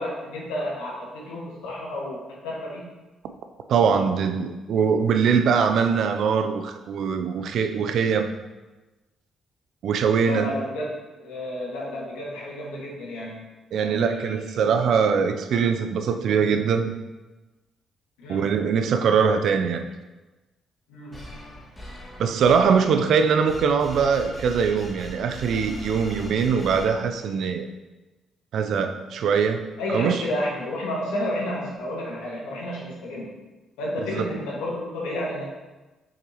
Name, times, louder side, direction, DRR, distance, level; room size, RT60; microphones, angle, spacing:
voice 1, 0.0-2.8 10.2-10.9 11.2-13.5 13.8-14.5 18.2-18.5 20.9-21.3 29.8-33.3 33.8-35.4, left 1 dB, 85° left, -4 dB, 1.7 m, -31 dB
voice 2, 3.7-8.3 9.8-10.5 13.7-16.9 18.3-19.8 22.2-27.7 28.5-30.2 34.1-34.3, right 6 dB, 70° right, 8 dB, 0.5 m, -22 dB
sound 1, 21.1-27.5, equal, 25° left, 2.1 m, -40 dB
6.6 x 6.0 x 3.0 m, 1.1 s
hypercardioid pair, 50°, 0 cm